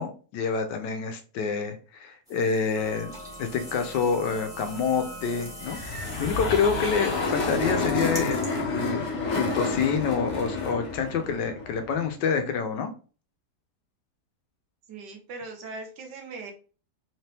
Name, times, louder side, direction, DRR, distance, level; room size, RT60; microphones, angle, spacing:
voice 1, 0.0-3.1 3.4-5.8 6.2-12.9, left 6 dB, 85° left, 7 dB, 1.3 m, -27 dB
sound 1, 2.3-8.5, right 1 dB, 5° right, 0.9 m, -45 dB
sound 2, 2.7-7.9, equal, 25° left, 1.2 m, -43 dB
sound 3, 5.7-12.1, left 3 dB, 50° left, 1.1 m, -29 dB
voice 2, 14.9-16.5, right 3 dB, 75° right, 3 dB, 1.5 m, -39 dB
3.8 x 2.8 x 3.3 m, 0.37 s
omnidirectional pair, 1.8 m